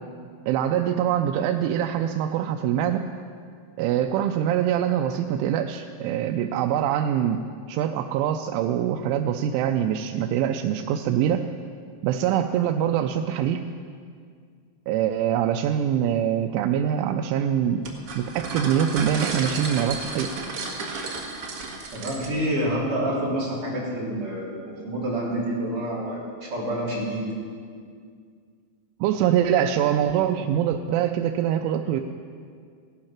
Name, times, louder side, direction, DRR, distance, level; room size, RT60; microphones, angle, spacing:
voice 1, 0.5-3.0 3.8-7.4 7.7-11.5 12.0-13.6 14.9-17.8 18.2-20.3 29.0-32.0, right 10 dB, 90° right, 5 dB, 3.1 m, -24 dB
sound 1, 17.8-22.5, right 3 dB, 70° right, 1.3 m, -32 dB
voice 2, 21.9-27.4, right 1 dB, 35° right, -5 dB, 3.5 m, -28 dB
17.0 x 11.5 x 5.9 m, 2.1 s
omnidirectional pair, 5.4 m